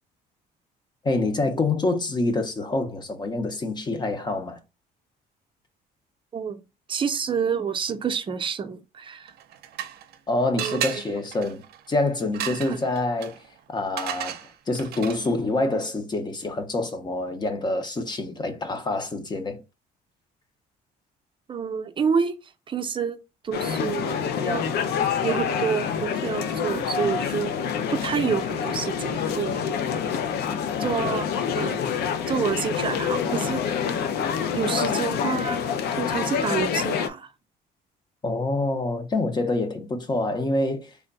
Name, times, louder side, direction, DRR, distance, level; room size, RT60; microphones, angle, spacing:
voice 1, 1.0-4.6 10.3-13.4 13.7-14.4 14.7-19.6 38.2-40.9, left 2 dB, 25° left, 0.7 m, -26 dB
voice 2, 6.9-9.3 10.6-11.0 12.7-12.8 21.5-22.3 22.7-23.2 23.4-24.6 25.2-27.5 27.9-29.7 30.8-31.3 31.6-31.8 32.3-34.1 34.5-35.6 36.0-37.3, right 6 dB, 30° right, 0.6 m, -28 dB
sound 1, 9.3-10.2 10.6-15.4, right 11 dB, 70° right, 0.6 m, -35 dB
sound 2, 23.5-37.1, left 7 dB, 70° left, 0.6 m, -27 dB
3.4 x 2.2 x 3.9 m
cardioid pair, 110°, 17 cm